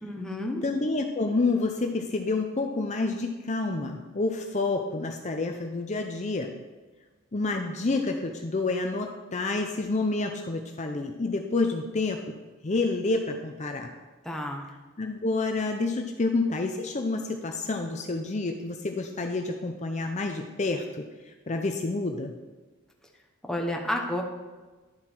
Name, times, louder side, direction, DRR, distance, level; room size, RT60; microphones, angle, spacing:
voice 1, 0.0-0.6 14.2-14.6 23.4-24.2, left 1 dB, 5° left, 1 dB, 1.2 m, -30 dB
voice 2, 0.6-6.5 7.3-12.2 12.6-13.9 15.0-22.3, left 3 dB, 35° left, 4 dB, 0.6 m, -29 dB
11.5 x 7.3 x 4.6 m, 1.3 s
head